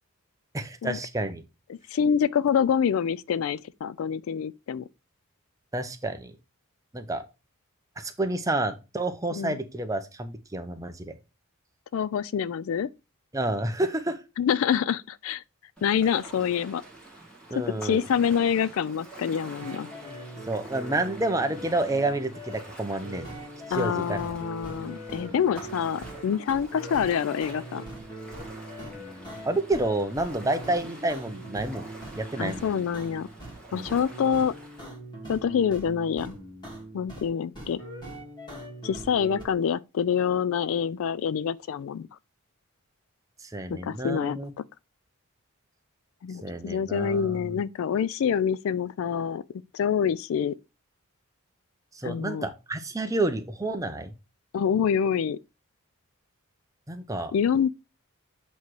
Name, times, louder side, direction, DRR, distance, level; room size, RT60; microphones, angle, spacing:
voice 1, 0.5-1.4 5.7-6.3 6.9-7.2 8.0-11.1 13.3-14.2 17.5-18.1 20.5-23.3 23.7-24.4 29.4-31.9 32.2-32.7 33.7-33.9 43.4-44.5 46.4-47.6 51.9-54.1 56.9-57.3, right 2 dB, 15° right, 0.7 m, -29 dB
voice 2, 1.7-4.9 9.4-9.6 11.9-12.9 14.4-15.4 15.8-16.8 17.8-19.9 23.7-27.8 32.4-33.3 33.7-34.5 35.3-36.4 36.9-37.8 38.8-42.1 43.7-44.4 46.2-50.5 52.0-52.5 54.5-55.4 57.3-57.7, left 7 dB, 65° left, 0.3 m, -26 dB
Ocean, 15.8-34.8, right 2 dB, 5° left, 1.7 m, -47 dB
sound 1, 19.6-33.6 33.9-37.3 37.5-39.5, right 1 dB, 20° left, 1.8 m, -42 dB
8.2 x 3.1 x 4.6 m
head